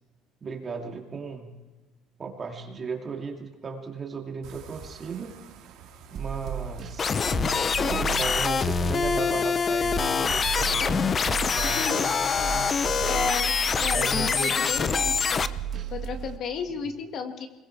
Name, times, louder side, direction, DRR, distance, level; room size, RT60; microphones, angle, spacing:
voice 1, 0.4-1.5 2.2-5.3 6.1-7.2 7.8-10.8 11.5-12.8 13.9-15.0, right 5 dB, 30° right, 2 dB, 2.7 m, -36 dB
sound 1, 4.4-14.2, right 7 dB, 75° right, 3.5 m, -51 dB
sound 2, 6.1-16.4, right 8 dB, 45° right, 1.6 m, -35 dB
sound 3, 7.0-15.5, left 6 dB, 30° left, 0.6 m, -25 dB
voice 2, 11.6-12.6 13.1-13.5 13.8-15.4 15.9-17.5, left 6 dB, 50° left, 6 dB, 1.9 m, -33 dB
25.0 x 21.5 x 4.8 m, 1.1 s
cardioid pair, 140°, 0 cm